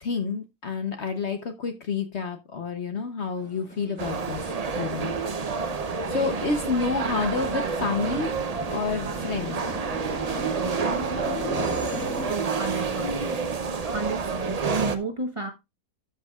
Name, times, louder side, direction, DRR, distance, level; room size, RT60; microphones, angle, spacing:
voice 1, 0.0-5.1 6.1-8.3 8.7-9.7, left 4 dB, 50° left, 1.0 m, -29 dB
sound 1, 3.4-12.3, left 1 dB, 5° left, 2.8 m, -38 dB
sound 2, 4.0-15.0, right 5 dB, 45° right, 0.5 m, -29 dB
voice 2, 12.3-13.4 13.8-15.5, right 3 dB, 25° right, 1.0 m, -32 dB
13.0 x 6.3 x 2.3 m
omnidirectional pair, 1.6 m